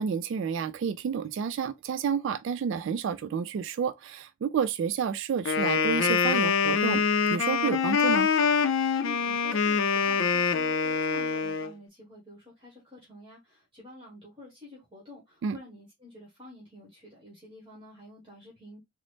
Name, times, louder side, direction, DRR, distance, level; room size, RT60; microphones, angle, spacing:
voice 1, 0.0-7.0 7.3-8.3 15.4-15.6, right 6 dB, 70° right, 0.3 m, -30 dB
Wind instrument woodwind instrument, 5.4-11.7, left 6 dB, 70° left, 0.5 m, -25 dB
voice 2, 9.0-18.8, left 2 dB, 25° right, 1.2 m, -48 dB
3.9 x 2.0 x 3.1 m
head